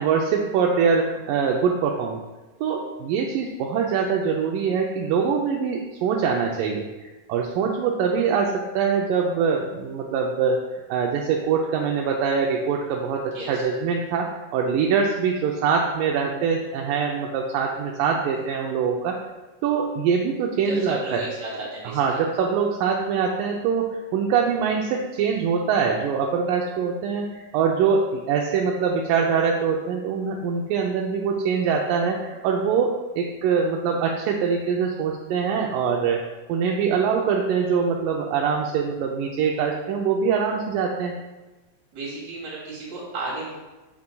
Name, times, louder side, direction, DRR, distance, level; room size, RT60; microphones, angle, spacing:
voice 1, 0.0-2.2 2.6-10.6 10.9-19.2 19.6-21.3 21.8-36.2 36.5-41.2, right 6 dB, 80° right, 0 dB, 2.1 m, -23 dB
voice 2, 13.3-13.6 20.7-22.2 41.9-43.5, right 2 dB, 50° right, -6 dB, 3.5 m, -34 dB
8.4 x 7.7 x 2.3 m, 1.1 s
omnidirectional pair, 4.2 m